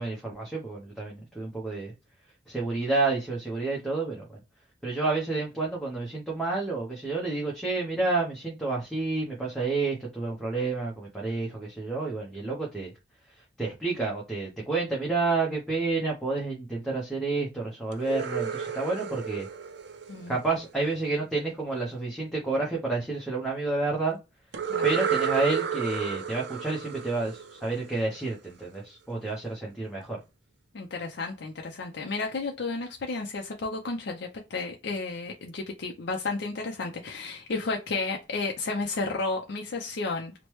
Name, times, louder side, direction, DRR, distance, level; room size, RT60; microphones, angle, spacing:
voice 1, 0.0-1.9 2.5-4.4 4.8-12.9 13.6-19.5 20.3-24.2 24.8-30.2, right 3 dB, ahead, 0.7 m, -30 dB
sound 1, 17.9-20.9 24.5-28.3, right 7 dB, 65° right, 0.4 m, -32 dB
voice 2, 30.7-40.3, left 3 dB, 65° left, 0.5 m, -32 dB
3.1 x 2.1 x 3.0 m
head